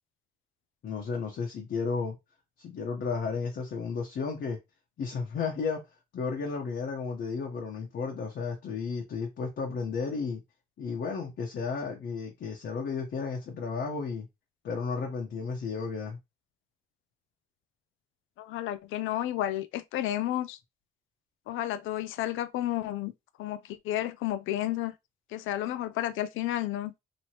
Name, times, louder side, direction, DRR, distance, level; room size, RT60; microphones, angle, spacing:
voice 1, 0.8-2.2 2.6-4.6 5.0-5.9 6.1-10.4 10.8-14.3 14.6-16.2, left 5 dB, 60° left, 1.0 m, -33 dB
voice 2, 18.4-20.6 21.5-23.1 23.4-24.9 25.3-26.9, left 13 dB, 85° left, 0.4 m, -31 dB
3.0 x 3.0 x 2.9 m
cardioid pair, 90°, 20 cm